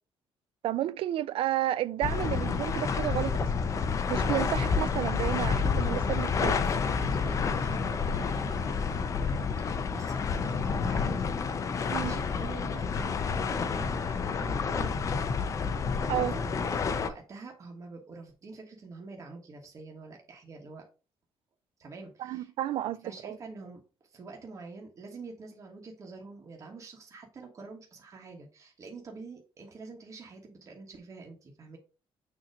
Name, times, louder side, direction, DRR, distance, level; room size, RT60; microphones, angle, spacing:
voice 1, 0.6-3.5 4.1-6.6 11.9-12.1 16.1-16.4 22.2-23.4, right 13 dB, 70° right, 0.4 m, -31 dB
sound 1, 2.0-17.1, left 5 dB, 35° left, 0.5 m, -29 dB
voice 2, 6.6-9.3 9.6-11.3 11.6-15.3 16.1-20.8 21.8-22.5 23.0-23.8 24.1-31.8, right 3 dB, 35° right, 1.2 m, -46 dB
6.5 x 2.9 x 5.0 m
cardioid pair, 175°, 10 cm